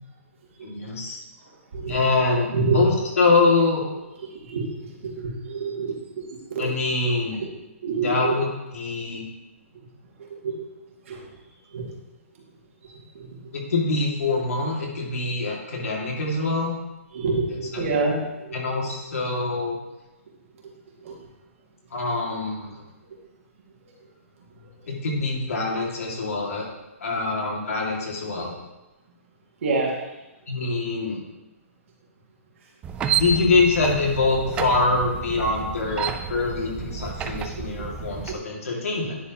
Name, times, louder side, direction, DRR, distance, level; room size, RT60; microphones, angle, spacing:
voice 1, 0.6-1.2 1.9-3.8 6.6-7.4 8.0-9.3 13.5-16.7 17.5-17.9 18.5-19.8 21.9-22.8 24.9-26.7 27.0-28.5 30.5-31.2 33.1-39.2, left 3 dB, 80° left, -1 dB, 2.1 m, -24 dB
voice 2, 5.0-6.2 6.5-6.7 7.8-8.4 10.4-10.5 11.1-11.2 11.7-11.8 17.1-18.1 18.4-18.8 21.0-21.1 29.6-30.0, right 4 dB, 65° right, -2 dB, 2.1 m, -26 dB
sound 1, 32.8-38.4, right 7 dB, 15° right, 0.3 m, -30 dB
10.0 x 4.3 x 2.9 m, 1.1 s
hypercardioid pair, 150°, 8 cm